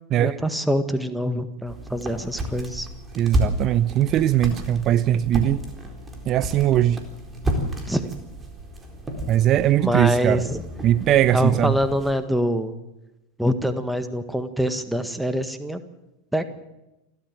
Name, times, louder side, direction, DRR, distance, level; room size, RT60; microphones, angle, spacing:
voice 1, 0.2-2.9 7.9-8.2 9.8-10.6 11.3-12.7 13.4-15.8 16.3-16.4, equal, ahead, 10 dB, 1.7 m, -25 dB
sound 1, 1.6-12.2, right 1 dB, 20° right, 4.1 m, -31 dB
voice 2, 3.2-5.6 6.3-7.0 9.3-10.4 10.8-11.8, right 12 dB, 40° right, 15 dB, 0.6 m, -20 dB
28.5 x 13.0 x 7.6 m, 0.97 s
figure-of-eight pair, 80°, 0 cm